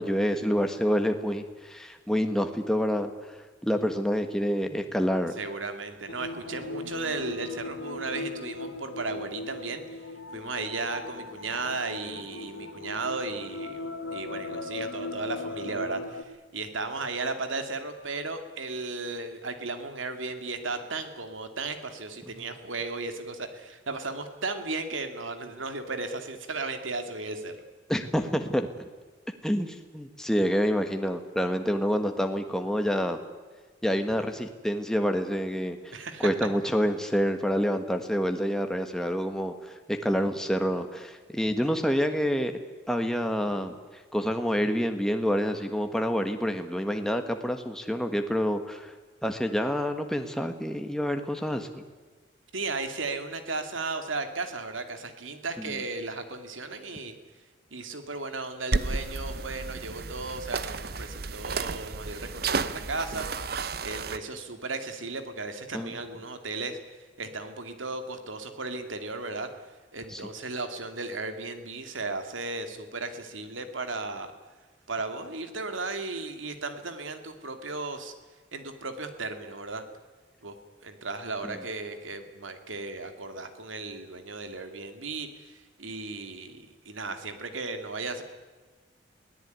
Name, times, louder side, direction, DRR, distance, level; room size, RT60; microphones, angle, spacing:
voice 1, 0.0-3.1 3.6-5.3 27.9-28.7 29.4-33.2 33.8-35.9 36.2-42.6 42.9-43.7 44.1-48.9 49.2-51.8 55.6-55.8 65.7-65.9 70.1-70.2 81.4-81.6, equal, 5° left, 6 dB, 1.4 m, -27 dB
voice 2, 5.4-9.8 10.3-27.6 35.9-36.3 52.5-57.1 57.7-63.3 63.8-66.8 67.2-69.5 69.9-74.3 74.9-78.1 78.5-79.8 80.4-80.5 80.8-88.2, right 3 dB, 85° right, 7 dB, 2.6 m, -35 dB
sound 1, 6.1-16.2, left 2 dB, 85° left, 1.7 m, -38 dB
sound 2, 58.7-64.2, right 4 dB, 50° right, 0.8 m, -32 dB
23.0 x 17.5 x 9.4 m, 1.4 s
head